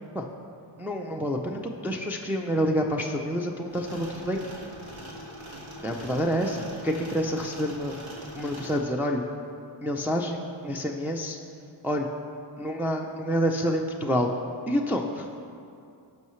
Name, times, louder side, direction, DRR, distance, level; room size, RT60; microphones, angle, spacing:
voice 1, 0.8-4.5 5.8-8.0 8.3-9.3 9.8-11.4 11.8-12.1 12.6-14.3 14.7-15.3, equal, 5° right, 0 dB, 0.5 m, -28 dB
sound 1, 3.7-8.8, equal, 80° right, 1.6 m, -42 dB
16.5 x 5.6 x 3.2 m, 2.5 s
wide cardioid pair, 85°, 46 cm